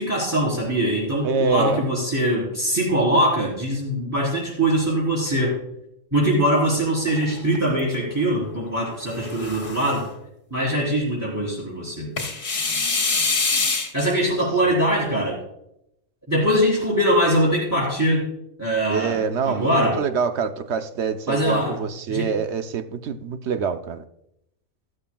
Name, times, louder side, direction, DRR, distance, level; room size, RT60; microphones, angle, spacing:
voice 1, 0.0-5.5 6.1-10.0 10.5-12.1 13.9-15.4 16.3-18.3 18.6-19.2 19.4-20.0 21.3-21.8 22.1-22.3, right 1 dB, 10° right, 3.7 m, -22 dB
voice 2, 1.2-1.8 14.6-14.7 18.9-24.0, right 6 dB, 60° right, 0.9 m, -25 dB
sound 1, 7.1-8.0 9.0-10.1 12.2-14.1, left 3 dB, 50° left, 1.7 m, -25 dB
14.5 x 13.0 x 2.3 m
omnidirectional pair, 1.5 m